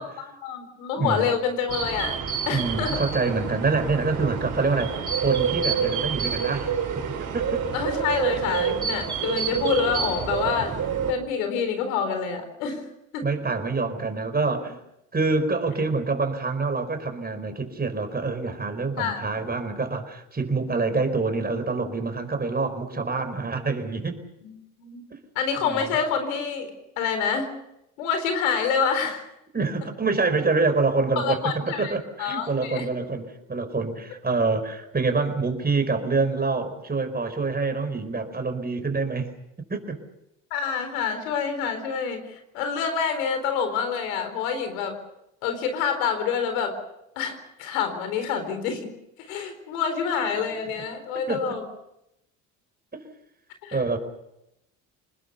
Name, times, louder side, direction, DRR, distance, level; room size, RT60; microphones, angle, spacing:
voice 1, 0.0-2.2 2.5-3.0 7.7-10.8 11.1-12.8 13.1-13.2 19.0-19.5 20.6-21.0 24.4-25.0 25.3-27.5 28.0-29.3 31.2-31.9 32.2-32.9 40.5-45.0 45.4-46.7 47.2-48.9 49.2-51.6 53.6-53.8, left 6 dB, 80° left, 8 dB, 4.3 m, -27 dB
sound 1, 1.7-11.1, right 7 dB, 45° right, 5.4 m, -28 dB
voice 2, 2.5-7.6 13.2-14.8 15.1-24.2 25.1-25.2 25.6-25.9 29.5-39.3 39.7-40.0 51.3-51.6 52.9-53.0 53.7-54.0, right 3 dB, 20° right, 8 dB, 4.8 m, -26 dB
27.0 x 20.0 x 6.9 m, 0.84 s
hypercardioid pair, 70°, 41 cm